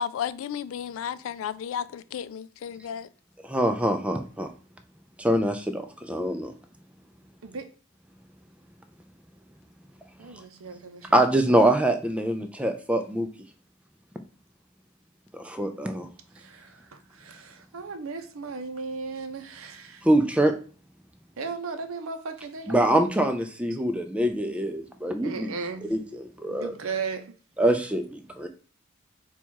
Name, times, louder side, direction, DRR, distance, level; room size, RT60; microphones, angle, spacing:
voice 1, 0.0-3.1, left 8 dB, 80° left, 0.3 m, -33 dB
voice 2, 3.5-4.5 5.2-5.8 6.1-6.5 11.1-13.3 15.3-16.1 20.0-20.5 22.7-25.5 25.8-26.7 27.6-28.5, right 1 dB, 5° right, 0.3 m, -24 dB
voice 3, 10.2-11.3 16.4-16.8 17.2-20.0 21.4-22.8 25.2-25.8 26.5-27.2, right 4 dB, 85° right, 0.6 m, -36 dB
4.2 x 2.4 x 4.4 m
head